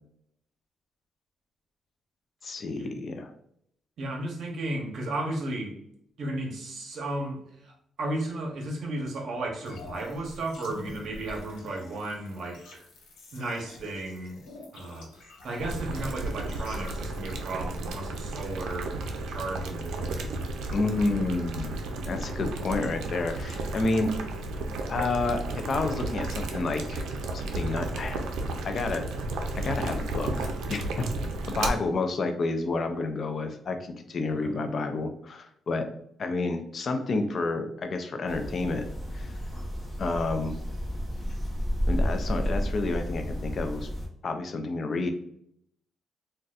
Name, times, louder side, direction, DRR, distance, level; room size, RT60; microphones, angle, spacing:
voice 1, 2.4-3.3 20.7-21.8 22.1-24.1 24.9-27.1 27.3-28.2 28.6-29.0 29.5-31.1 31.5-35.9 36.2-38.8 39.1-39.4 40.0-40.6 41.9-43.9 44.2-45.1, left 3 dB, 45° left, 6 dB, 0.4 m, -30 dB
voice 2, 4.0-5.7 6.2-12.8 13.3-14.4 14.7-18.9 19.2-20.2 21.0-21.2 31.6-31.9 34.4-34.6, right 1 dB, 60° right, 1 dB, 0.8 m, -34 dB
sound 1, 9.7-17.5, left 2 dB, 85° left, 0.9 m, -47 dB
Boiling, 15.6-31.7, right 2 dB, 85° right, 0.4 m, -33 dB
sound 2, 38.3-44.1, equal, 5° left, 0.8 m, -31 dB
4.0 x 2.2 x 2.4 m, 0.70 s
cardioid pair, 125°, 0 cm